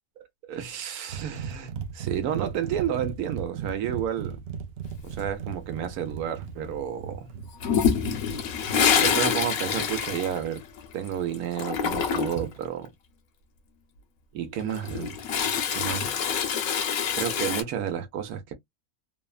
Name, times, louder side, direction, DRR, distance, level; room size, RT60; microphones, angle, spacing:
voice 1, 0.5-4.4 5.0-7.3 9.0-10.6 10.9-12.9 14.3-15.2 15.7-16.1 17.1-18.5, right 9 dB, 85° right, 1.2 m, -31 dB
sound 1, 1.1-9.9 12.3-12.7, right 7 dB, 65° right, 0.6 m, -37 dB
Toilet flush, 7.6-11.1 11.3-12.5 14.6-17.6, left 7 dB, 75° left, 1.1 m, -26 dB
3.0 x 2.1 x 2.3 m
omnidirectional pair, 1.5 m